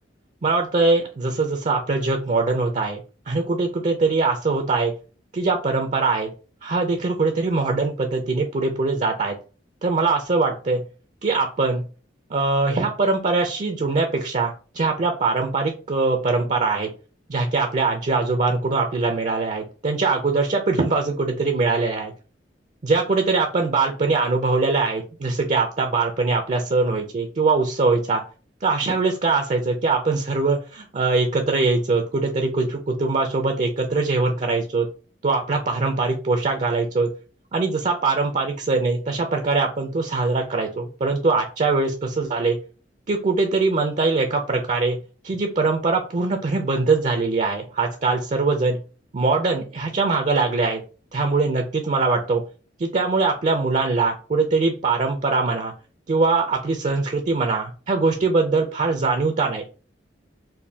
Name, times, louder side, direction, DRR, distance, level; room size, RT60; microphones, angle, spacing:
voice 1, 0.4-4.9 5.3-6.3 6.6-9.4 9.8-10.8 11.2-11.8 12.3-16.9 17.3-22.1 22.8-28.2 28.6-34.9 35.2-37.1 37.5-42.6 43.1-45.0 45.2-48.8 49.1-50.8 51.1-52.4 52.8-55.7 56.1-59.7, right 3 dB, 40° right, 4 dB, 0.4 m, -22 dB
4.1 x 2.2 x 3.3 m, 0.36 s
head